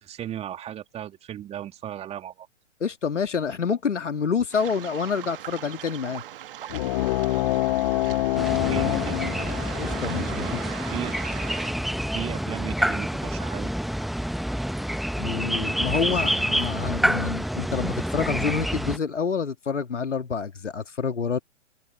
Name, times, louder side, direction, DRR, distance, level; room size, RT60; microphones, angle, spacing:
voice 1, 0.0-2.5 8.6-9.4 10.2-11.2 12.0-13.7, right 11 dB, 15° right, 2.4 m, -36 dB
voice 2, 2.8-6.2 9.8-10.5 15.2-21.4, left 6 dB, 75° left, 2.3 m, -27 dB
Waves surf, 4.5-11.7, right 12 dB, 45° right, 1.6 m, -40 dB
sound 1, 6.7-11.8, left 17 dB, 35° left, 1.1 m, -27 dB
sound 2, 8.4-19.0, equal, ahead, 0.9 m, -28 dB
figure-of-eight pair, 120°, 37 cm